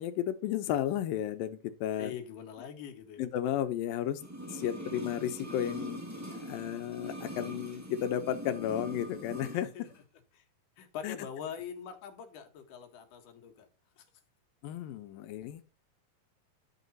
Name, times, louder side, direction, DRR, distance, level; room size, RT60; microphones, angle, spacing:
voice 1, 0.0-2.1 3.2-4.2 4.5-6.0 6.5-9.7 11.0-11.2 14.6-15.6, left 11 dB, 90° left, 2.6 m, -33 dB
voice 2, 2.0-3.3 9.7-9.9 10.3-10.4 10.8-13.7 14.0-14.1, left 8 dB, 70° left, 3.1 m, -43 dB
sound 1, 4.1-9.6 9.9-10.0, equal, 10° right, 0.8 m, -42 dB
11.0 x 5.9 x 4.1 m
omnidirectional pair, 4.0 m